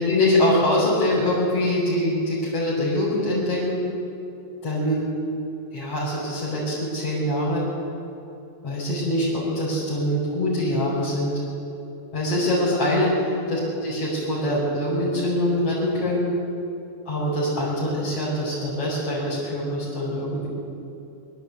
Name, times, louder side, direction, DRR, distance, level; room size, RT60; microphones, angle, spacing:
voice 1, 0.0-3.8 4.6-5.0 5.7-7.6 8.6-11.3 12.1-13.1 13.5-16.3 17.1-20.5, left 1 dB, 50° left, -9 dB, 5.9 m, -24 dB
24.5 x 13.0 x 8.2 m, 2.7 s
omnidirectional pair, 3.5 m